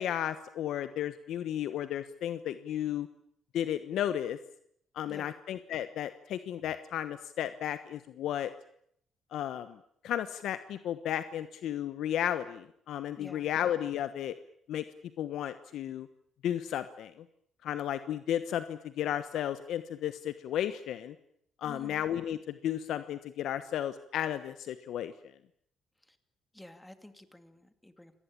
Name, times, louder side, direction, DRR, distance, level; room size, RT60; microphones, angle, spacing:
voice 1, 0.0-3.1 3.5-4.4 4.9-8.5 9.3-9.8 10.0-14.3 14.7-14.8 15.2-16.1 16.4-17.1 17.6-21.1 21.6-25.1, left 11 dB, 75° left, 12 dB, 1.2 m, -33 dB
voice 2, 5.0-5.3 13.1-13.5 21.6-22.0 26.0-26.2 26.5-28.2, left 1 dB, 10° left, 9 dB, 2.5 m, -50 dB
26.0 x 19.0 x 8.8 m, 0.70 s
cardioid pair, 110°, 0 cm